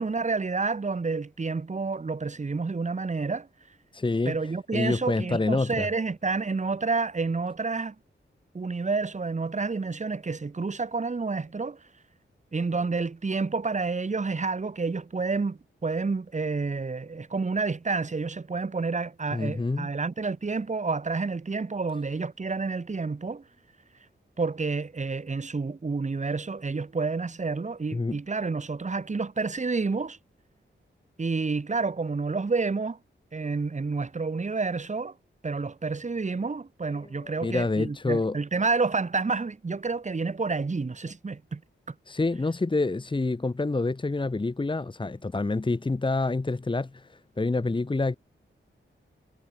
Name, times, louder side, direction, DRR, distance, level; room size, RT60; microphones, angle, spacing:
voice 1, 0.0-3.5 4.2-7.9 8.5-11.8 12.5-23.4 24.4-30.2 31.2-33.0 33.3-35.1 35.4-41.6 41.9-42.0, right 4 dB, 35° right, 2.9 m, -29 dB
voice 2, 3.9-4.4 4.7-5.9 19.3-19.9 27.9-28.2 37.2-38.4 42.1-48.2, left 3 dB, 25° left, 1.7 m, -27 dB
wide cardioid pair, 130°, 20 cm